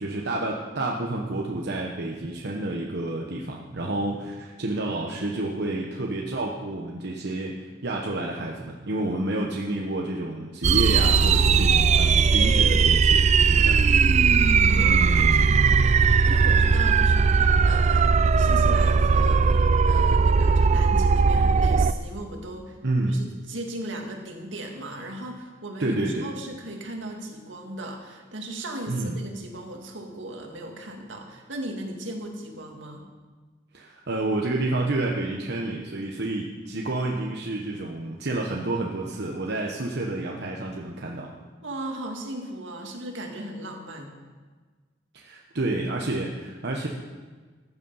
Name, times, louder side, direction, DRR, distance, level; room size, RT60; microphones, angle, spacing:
voice 1, 0.0-7.6 7.8-13.8 22.8-23.2 25.8-26.3 28.9-29.2 33.7-41.3 45.1-46.9, right 2 dB, 60° right, -1 dB, 1.0 m, -29 dB
sound 1, 10.6-21.9, right 5 dB, 35° right, 0.4 m, -19 dB
voice 2, 14.7-19.6 19.8-22.8 23.1-33.0 41.6-44.1, right 1 dB, 85° right, 2 dB, 2.0 m, -37 dB
14.5 x 8.2 x 5.5 m, 1.4 s
head